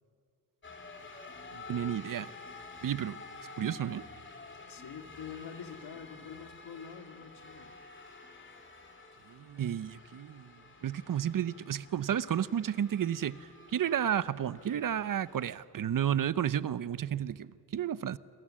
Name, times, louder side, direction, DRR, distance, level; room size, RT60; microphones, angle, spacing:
sound 1, 0.6-15.6, left 3 dB, 30° left, 3.1 m, -50 dB
voice 1, 1.5-2.3 2.8-3.2 3.6-4.0 9.3-10.5 10.8-18.2, right 9 dB, 55° right, 0.7 m, -32 dB
voice 2, 4.7-7.8, left 7 dB, 80° left, 2.0 m, -46 dB
27.5 x 24.0 x 7.5 m
cardioid pair, 100°, 40 cm